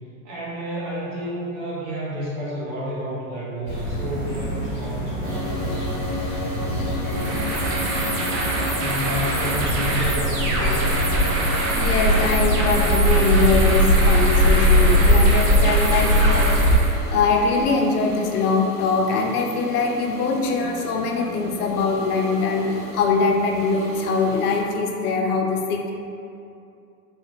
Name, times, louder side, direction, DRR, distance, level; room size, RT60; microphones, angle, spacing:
voice 1, 0.2-5.9 8.7-11.1, equal, 25° right, -6 dB, 0.3 m, -30 dB
sound 1, 3.7-16.7, equal, 20° left, 1.3 m, -21 dB
sound 2, 5.2-24.6, left 2 dB, 5° right, 0.9 m, -34 dB
sound 3, 7.0-17.0, right 2 dB, 65° right, 0.8 m, -27 dB
voice 2, 11.8-16.8 17.1-25.9, left 4 dB, 75° left, 1 dB, 0.6 m, -22 dB
3.4 x 2.6 x 2.5 m, 2.6 s
hypercardioid pair, 105°, 46 cm